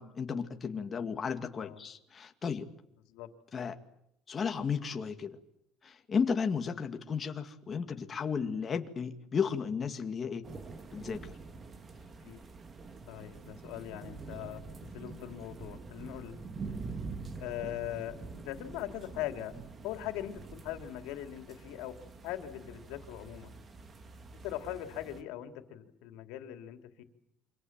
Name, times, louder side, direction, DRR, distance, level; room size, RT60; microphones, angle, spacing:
voice 1, 0.0-2.7 3.5-3.8 4.3-5.4 5.8-10.4 10.9-11.3, left 6 dB, 30° left, 6 dB, 2.1 m, -34 dB
sound 1, 10.4-25.2, right 4 dB, 25° right, 2.0 m, -46 dB
voice 2, 13.1-14.6 14.9-16.4 17.4-19.5 19.8-22.0 22.2-23.5 24.4-27.0, left 12 dB, 90° left, 6 dB, 3.1 m, -40 dB
28.0 x 25.5 x 7.5 m, 0.76 s
cardioid pair, 145°, 0 cm